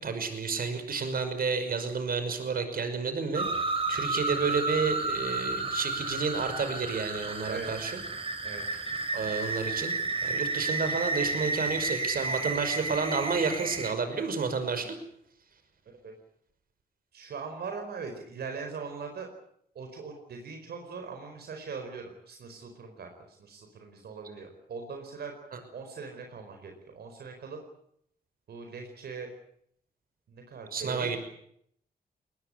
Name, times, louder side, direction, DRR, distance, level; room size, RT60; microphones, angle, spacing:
voice 1, 0.0-3.5 3.9-8.0 9.1-14.9 25.5-25.6 30.7-31.2, right 5 dB, 65° right, 9 dB, 5.8 m, -30 dB
sound 1, 3.3-13.9, right 3 dB, 35° right, 4.6 m, -32 dB
voice 2, 7.5-7.8 8.4-8.6 16.0-16.2 17.1-19.3 19.7-25.3 25.7-27.6 28.5-29.3 30.3-31.2, right 5 dB, 85° right, 4 dB, 4.8 m, -41 dB
21.5 x 20.0 x 9.8 m, 0.70 s
cardioid pair, 85°, 16 cm